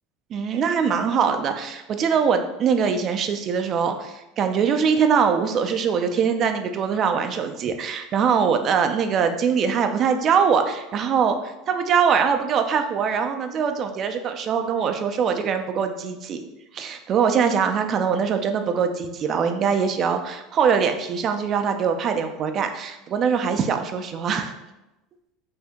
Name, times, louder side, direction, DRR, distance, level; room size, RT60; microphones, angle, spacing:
voice 1, 0.3-16.4 16.7-24.5, right 6 dB, 45° right, 6 dB, 0.4 m, -22 dB
2.8 x 2.6 x 3.4 m, 0.96 s
supercardioid pair, 100°, 0 cm